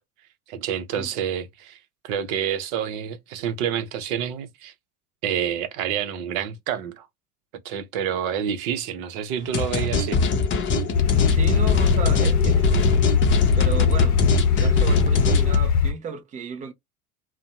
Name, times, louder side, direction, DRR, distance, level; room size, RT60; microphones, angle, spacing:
voice 1, 0.5-1.8 2.0-4.7 5.2-7.1 7.6-10.2, right 8 dB, 60° right, 0.7 m, -28 dB
sound 1, 9.5-15.5, left 3 dB, 25° left, 0.6 m, -23 dB
sound 2, 10.9-15.9, left 6 dB, 70° left, 0.7 m, -20 dB
voice 2, 11.3-13.0 13.6-16.7, right 6 dB, 15° right, 0.4 m, -34 dB
2.5 x 2.1 x 2.6 m
figure-of-eight pair, 75°, 48 cm